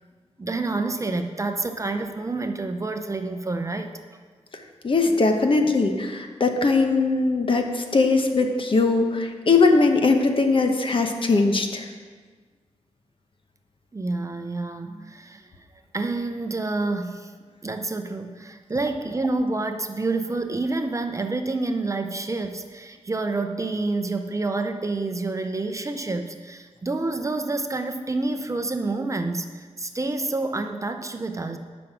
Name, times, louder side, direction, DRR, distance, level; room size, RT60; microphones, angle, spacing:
voice 1, 0.4-3.9 13.9-15.5 15.9-17.3 17.6-31.6, right 3 dB, 25° right, 6 dB, 0.6 m, -28 dB
voice 2, 4.8-11.9, left 3 dB, 45° left, 4 dB, 1.0 m, -20 dB
11.0 x 6.2 x 6.0 m, 1.5 s
wide cardioid pair, 115°, 12 cm